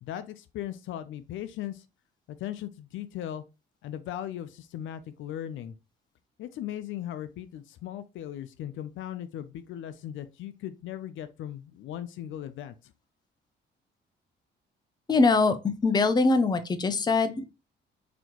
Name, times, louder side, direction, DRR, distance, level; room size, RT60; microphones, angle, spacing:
voice 1, 0.0-1.8 2.3-3.4 3.8-5.7 6.4-12.7, left 11 dB, 75° left, 0.5 m, -38 dB
voice 2, 15.1-17.5, left 3 dB, 20° left, 0.5 m, -23 dB
4.0 x 2.9 x 2.9 m
cardioid pair, 90°, 20 cm